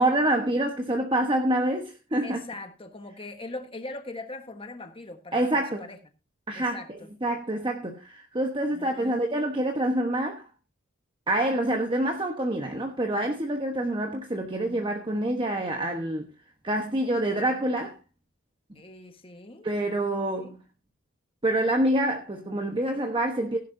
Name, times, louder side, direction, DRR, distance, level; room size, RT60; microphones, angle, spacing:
voice 1, 0.0-2.4 5.3-5.9 6.5-10.5 11.3-16.3 16.6-17.9 19.6-20.6 21.4-23.6, right 1 dB, 25° right, 1.2 m, -26 dB
voice 2, 2.2-6.0 6.5-7.1 8.7-9.4 18.7-19.7 20.4-20.5, left 2 dB, 25° left, 1.4 m, -41 dB
16.0 x 11.0 x 2.7 m
head